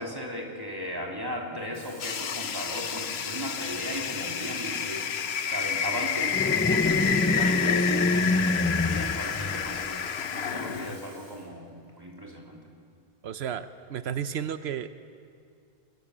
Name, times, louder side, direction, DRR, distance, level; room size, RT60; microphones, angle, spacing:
voice 1, 0.0-5.1 5.4-8.1 8.8-12.6, equal, 20° right, -1 dB, 3.4 m, -36 dB
Water tap faucet / Fill (with liquid), 1.6-11.5 11.9-12.1, left 1 dB, 55° left, 4.4 m, -50 dB
sound 1, 2.0-11.0, left 7 dB, 85° left, 1.1 m, -29 dB
sound 2, 6.3-10.0, left 2 dB, 15° left, 0.4 m, -26 dB
voice 2, 13.2-15.1, right 8 dB, 90° right, 11 dB, 1.0 m, -33 dB
24.5 x 21.0 x 7.4 m, 2.3 s
omnidirectional pair, 1.0 m